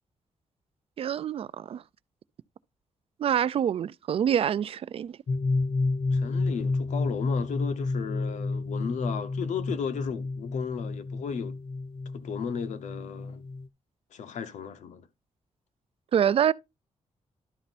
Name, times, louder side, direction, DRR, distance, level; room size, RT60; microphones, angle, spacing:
voice 1, 1.0-1.8 3.2-5.2 16.1-16.5, right 9 dB, 55° right, 0.4 m, -26 dB
sound 1, 5.3-13.7, left 3 dB, 45° left, 0.6 m, -30 dB
voice 2, 6.1-11.5 12.1-13.4 14.1-15.1, left 6 dB, 85° left, 1.1 m, -34 dB
11.5 x 4.4 x 4.1 m
wide cardioid pair, 160°, 12 cm